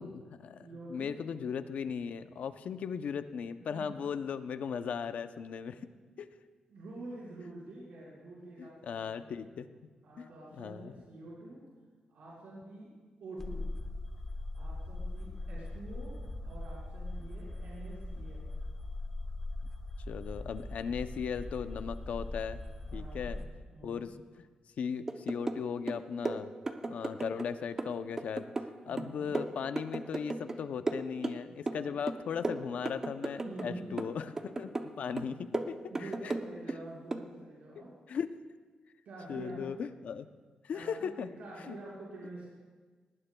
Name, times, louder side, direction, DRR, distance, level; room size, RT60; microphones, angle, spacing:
voice 1, 0.0-5.8 6.2-6.3 8.6-9.9 10.2-10.3 10.6-10.9 20.1-22.6 22.9-23.4 23.8-24.1 24.8-26.5 26.9-28.5 28.9-34.3 34.6-34.7 35.0-36.3 38.1-38.3 39.3-40.3 40.6-41.3 41.7-41.8, left 7 dB, 65° left, 11 dB, 0.6 m, -37 dB
voice 2, 0.6-1.2 3.6-3.9 6.1-6.2 6.7-9.5 10.0-11.6 12.1-12.9 13.2-13.7 14.5-16.1 16.4-18.5 22.9-23.3 23.7-24.0 28.9-29.3 31.6-31.9 33.4-34.0 35.9-37.9 39.0-39.6 40.7-42.5, right 2 dB, 85° right, -6 dB, 4.7 m, -47 dB
sound 1, 13.4-23.4, left 2 dB, 15° left, 1.2 m, -40 dB
sound 2, 25.1-25.6 25.9-27.5 27.8-30.6 30.9-31.8 32.1-33.7 34.0-34.9 35.2-36.8 37.1-37.3, right 2 dB, 25° right, 0.6 m, -35 dB
19.5 x 18.5 x 2.3 m, 1.4 s
wide cardioid pair, 155°, 3 cm